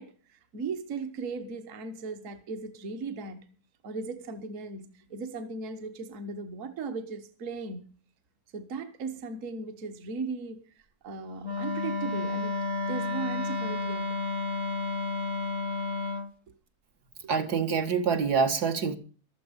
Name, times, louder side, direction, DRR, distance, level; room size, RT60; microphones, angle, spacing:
voice 1, 0.0-3.5 3.8-7.9 8.5-12.6 12.9-14.2, right 4 dB, 55° right, 1.4 m, -37 dB
Wind instrument woodwind instrument, 11.4-16.3, left 3 dB, 40° right, 0.9 m, -31 dB
voice 2, 17.3-19.0, right 6 dB, 75° right, 2.1 m, -26 dB
15.0 x 12.5 x 5.2 m
omnidirectional pair, 1.7 m